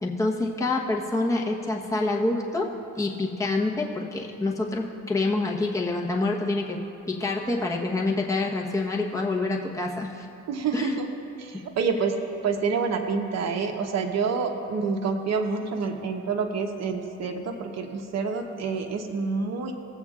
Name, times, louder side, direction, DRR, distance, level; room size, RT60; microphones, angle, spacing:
voice 1, 0.0-2.7 3.0-6.8 7.1-10.3 10.7-11.0, left 2 dB, 10° left, -1 dB, 1.0 m, -27 dB
voice 2, 10.5-11.1 11.4-12.2 12.4-19.7, right 5 dB, 60° right, 4 dB, 1.0 m, -28 dB
19.0 x 8.0 x 2.4 m, 2.7 s
cardioid pair, 90°, 30 cm